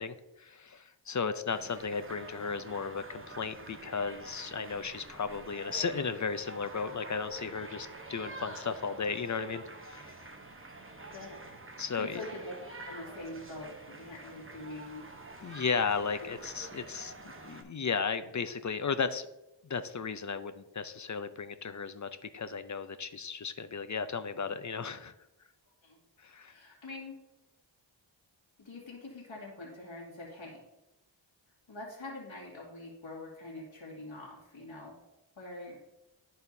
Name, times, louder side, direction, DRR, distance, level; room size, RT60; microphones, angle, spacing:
voice 1, 0.0-10.2 11.8-12.2 15.4-19.3 19.6-25.1 26.2-26.5, left 5 dB, 40° left, 11 dB, 0.5 m, -35 dB
sound 1, 1.5-17.6, right 3 dB, 25° right, 0.9 m, -47 dB
voice 2, 11.1-11.4 12.0-12.6 12.9-15.1 16.2-16.3 25.8-26.0 26.4-27.2 28.6-30.6 31.7-35.0 35.4-35.8, left 2 dB, 75° left, -4 dB, 2.2 m, -44 dB
12.5 x 4.3 x 2.7 m, 0.93 s
wide cardioid pair, 55°, 47 cm